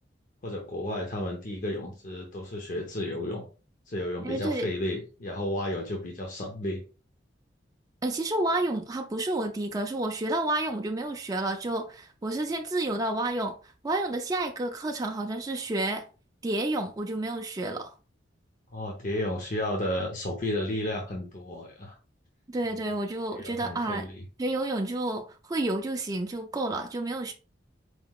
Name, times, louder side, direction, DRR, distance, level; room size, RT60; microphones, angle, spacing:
voice 1, 0.4-3.4 3.9-6.8 18.7-22.0 23.3-24.2, left 1 dB, 45° left, 0.7 m, -32 dB
voice 2, 4.2-4.7 8.0-16.1 16.4-17.9 22.5-24.1 24.4-27.3, right 2 dB, 20° right, 0.4 m, -30 dB
4.6 x 3.8 x 2.3 m
head